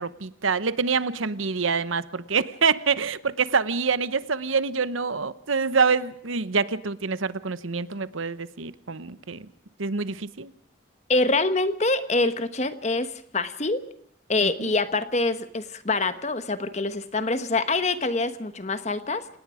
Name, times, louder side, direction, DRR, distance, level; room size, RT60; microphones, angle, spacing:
voice 1, 0.0-9.5 9.8-10.5 14.4-14.7, right 5 dB, 85° right, 15 dB, 1.0 m, -26 dB
voice 2, 11.1-13.8 14.3-19.3, left 3 dB, 35° left, 11 dB, 1.2 m, -25 dB
28.5 x 18.0 x 5.0 m, 0.67 s
head